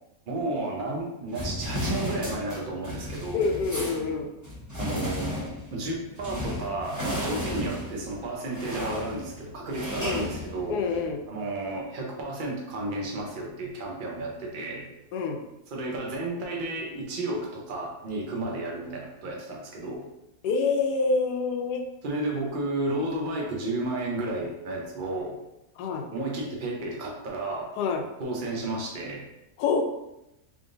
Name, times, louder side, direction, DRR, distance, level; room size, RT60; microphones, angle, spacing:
voice 1, 0.3-3.4 4.8-10.8 11.3-14.9 15.7-20.0 22.0-25.4 26.1-27.7 28.2-29.2, right 2 dB, 50° right, -1 dB, 0.6 m, -32 dB
sound 1, 1.3-11.1, left 1 dB, 15° right, 0.8 m, -34 dB
voice 2, 3.3-4.3 10.0-10.3 10.7-11.2 15.1-15.4 20.4-21.8 25.8-26.1 27.8-28.0 29.6-29.9, left 4 dB, 75° left, 4 dB, 1.1 m, -26 dB
3.6 x 3.5 x 2.6 m, 0.89 s
omnidirectional pair, 1.8 m